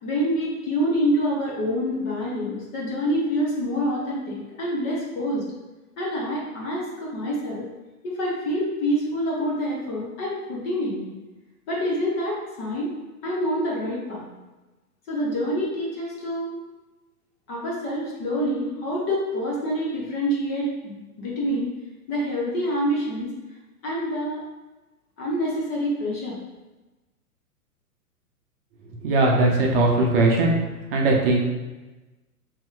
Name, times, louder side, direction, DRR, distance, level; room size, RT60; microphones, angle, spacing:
voice 1, 0.0-5.4 6.0-7.7 8.0-11.1 11.7-12.9 13.2-14.3 15.1-16.6 17.5-21.7 22.1-23.3 23.8-24.4 25.2-26.4, equal, 20° left, -4 dB, 0.7 m, -26 dB
voice 2, 29.0-30.6 30.9-31.5, right 2 dB, 40° right, -1 dB, 0.7 m, -19 dB
5.5 x 2.8 x 2.4 m, 1.1 s
figure-of-eight pair, 115°, 46 cm